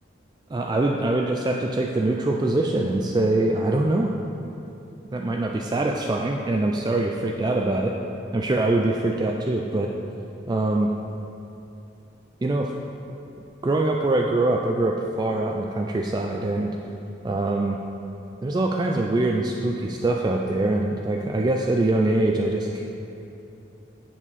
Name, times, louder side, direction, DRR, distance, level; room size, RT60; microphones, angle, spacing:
voice 1, 0.5-4.1 5.1-8.0 8.3-9.9 10.5-10.9 12.4-12.7 13.6-16.8 17.2-17.8 18.4-22.9, right 2 dB, 20° right, 1 dB, 0.3 m, -23 dB
7.3 x 7.3 x 4.1 m, 2.8 s
head